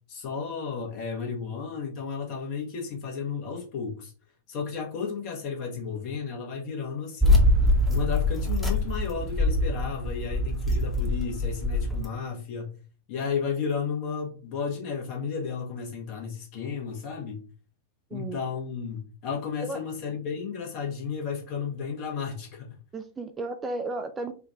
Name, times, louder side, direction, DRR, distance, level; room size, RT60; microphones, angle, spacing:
voice 1, 0.1-4.1 4.5-7.6 7.9-12.8 13.1-17.5 18.1-22.8, left 6 dB, 45° left, 1.3 m, -33 dB
sound 1, 7.2-12.1, left 1 dB, 5° left, 1.0 m, -24 dB
voice 2, 18.1-18.4 19.6-19.9 22.9-24.3, right 2 dB, 20° right, 0.4 m, -34 dB
3.7 x 2.5 x 3.6 m
figure-of-eight pair, 90°, 0 cm